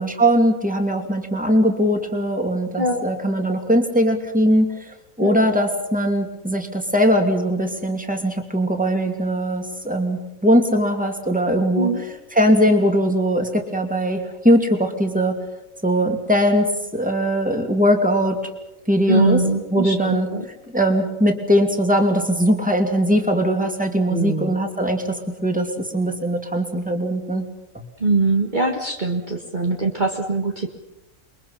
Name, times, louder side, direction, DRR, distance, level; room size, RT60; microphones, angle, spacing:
voice 1, 0.0-11.9 12.3-15.4 15.8-16.7 16.9-18.4 18.9-19.4 19.7-20.3 20.7-27.4 27.7-27.8, equal, 5° right, 4 dB, 2.7 m, -20 dB
voice 2, 19.1-20.4 24.1-24.6 28.0-30.7, right 3 dB, 35° right, 1 dB, 1.8 m, -22 dB
29.0 x 23.0 x 5.7 m, 0.94 s
omnidirectional pair, 1.4 m